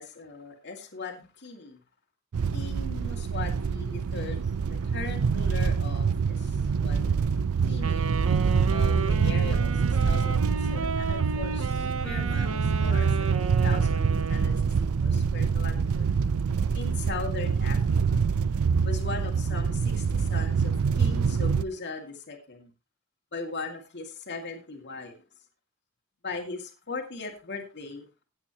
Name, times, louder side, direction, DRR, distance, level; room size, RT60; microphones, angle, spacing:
voice 1, 0.0-1.8 2.5-7.1 7.7-8.1 8.7-14.5 15.0-16.1 16.7-18.2 18.8-22.7 23.3-25.2 26.2-28.2, left 3 dB, 55° left, 3 dB, 2.3 m, -39 dB
sound 1, 2.3-21.6, right 5 dB, 85° right, 0.5 m, -25 dB
Wind instrument woodwind instrument, 7.8-14.8, right 4 dB, 70° right, 1.0 m, -34 dB
16.0 x 8.8 x 3.0 m, 0.29 s
head